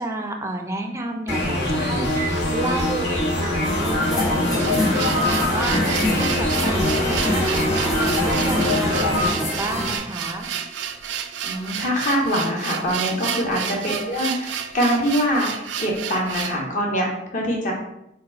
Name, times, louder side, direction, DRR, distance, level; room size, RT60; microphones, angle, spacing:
voice 1, 0.0-10.5 13.2-13.5 17.6-17.7, right 2 dB, 15° right, 3 dB, 0.4 m, -31 dB
sound 1, 1.3-9.3, left 1 dB, 75° left, 1.3 m, -23 dB
sound 2, 3.6-10.0, equal, 20° left, 1.1 m, -26 dB
sound 3, 4.5-16.6, right 8 dB, 85° right, 0.3 m, -31 dB
voice 2, 11.4-17.7, equal, 45° left, -2 dB, 0.9 m, -24 dB
3.8 x 2.3 x 4.3 m, 0.84 s
head